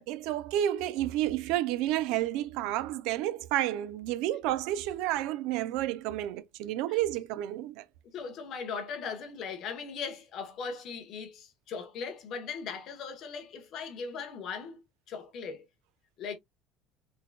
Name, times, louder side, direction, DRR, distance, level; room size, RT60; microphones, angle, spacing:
voice 1, 0.0-7.8, right 13 dB, 65° right, 0.4 m, -30 dB
voice 2, 8.1-15.6 16.2-16.4, left 5 dB, 40° left, 1.0 m, -39 dB
3.8 x 3.4 x 2.2 m
cardioid pair, 180°, 0 cm